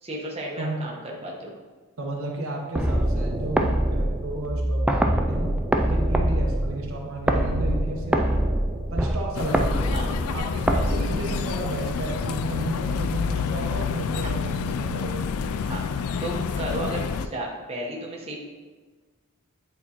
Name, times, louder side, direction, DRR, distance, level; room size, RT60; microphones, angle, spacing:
voice 1, 0.0-1.5 9.9-10.1 15.6-15.8 16.2-18.4, right 1 dB, 30° right, -2 dB, 1.0 m, -33 dB
voice 2, 2.0-5.5 5.8-8.5 8.9-9.9 10.2-15.5, right 1 dB, 65° right, 0 dB, 1.0 m, -33 dB
sound 1, 2.8-11.8, right 1 dB, 5° right, 0.3 m, -24 dB
sound 2, 9.3-17.3, left 5 dB, 75° left, 0.3 m, -28 dB
8.5 x 4.4 x 2.9 m, 1.3 s
head